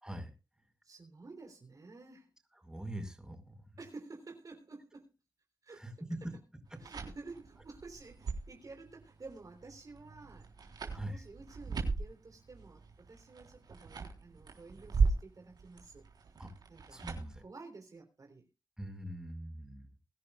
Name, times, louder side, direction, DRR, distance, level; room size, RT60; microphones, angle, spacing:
voice 1, 0.8-2.3 3.8-5.1 5.6-6.4 6.8-10.5 10.8-16.4 16.7-17.0 17.4-18.5, right 3 dB, 55° right, 4 dB, 3.5 m, -52 dB
voice 2, 2.6-3.5 5.8-6.2 10.9-11.2 16.4-16.5 16.9-17.4 18.8-19.9, right 1 dB, 10° right, 5 dB, 5.1 m, -42 dB
sound 1, 6.7-17.4, right 4 dB, 80° right, 3.8 m, -38 dB
23.0 x 11.0 x 2.4 m, 0.30 s
cardioid pair, 60°, 7 cm